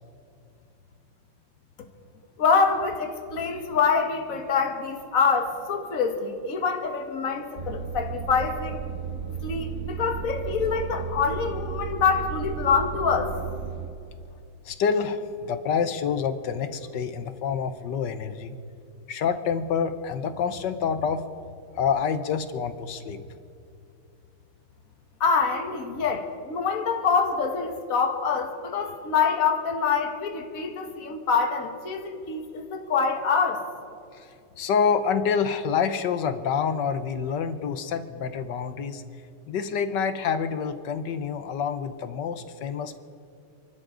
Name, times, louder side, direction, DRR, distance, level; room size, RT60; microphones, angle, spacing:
voice 1, 2.4-8.8 9.4-13.3 25.2-33.6, left 5 dB, 45° left, 4 dB, 1.8 m, -25 dB
sound 1, 7.6-13.9, right 7 dB, 50° right, 0.9 m, -34 dB
voice 2, 14.6-18.6 19.1-21.2 21.7-23.2 34.2-34.3 34.6-39.0 39.5-43.0, left 6 dB, 65° left, 10 dB, 1.3 m, -27 dB
29.0 x 12.0 x 3.9 m, 2.6 s
omnidirectional pair, 2.3 m